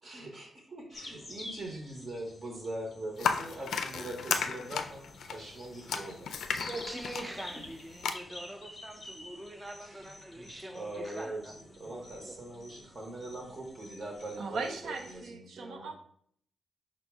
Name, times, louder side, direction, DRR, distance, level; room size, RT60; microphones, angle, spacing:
voice 1, 0.0-6.3 7.5-7.6 9.8-10.1 10.4-10.5 10.7-15.9, right 1 dB, 40° right, 0.8 m, -42 dB
sound 1, 0.9-15.3, left 1 dB, 25° left, 0.7 m, -50 dB
sound 2, 3.2-8.1, left 6 dB, 85° left, 0.3 m, -34 dB
voice 2, 6.7-11.5 11.9-12.3, right 1 dB, 10° right, 0.4 m, -43 dB
voice 3, 14.4-15.9, right 4 dB, 80° right, 0.6 m, -38 dB
5.1 x 2.0 x 4.6 m
wide cardioid pair, 155°, 0 cm